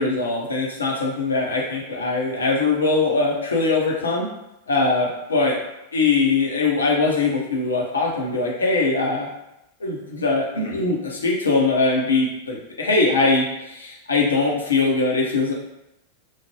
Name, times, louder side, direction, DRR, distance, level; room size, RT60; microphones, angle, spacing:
voice 1, 0.0-4.3 4.7-5.6 5.9-9.3 9.8-15.5, left 3 dB, 75° left, -2 dB, 0.7 m, -21 dB
3.1 x 2.1 x 3.0 m, 0.88 s
figure-of-eight pair, 90°, 0 cm